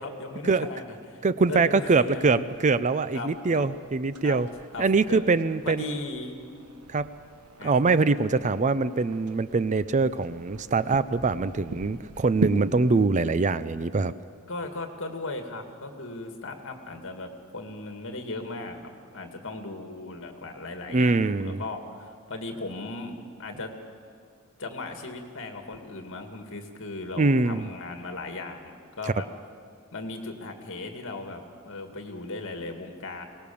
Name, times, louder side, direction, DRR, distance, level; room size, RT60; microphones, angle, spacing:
voice 1, 0.0-1.2 1.5-2.5 3.1-3.3 3.6-3.7 4.2-4.4 4.7-5.3 5.6-6.4 7.6-7.7 14.5-23.7 24.6-29.3 29.9-33.2, left 2 dB, 60° left, 5 dB, 2.2 m, -37 dB
voice 2, 1.2-4.5 4.8-6.0 6.9-7.1 7.6-14.1 20.9-21.6 27.2-27.7, right 3 dB, 35° right, 15 dB, 0.5 m, -23 dB
sound 1, 1.6-13.1, right 2 dB, 85° right, 1.2 m, -40 dB
23.5 x 18.5 x 7.1 m, 2.2 s
head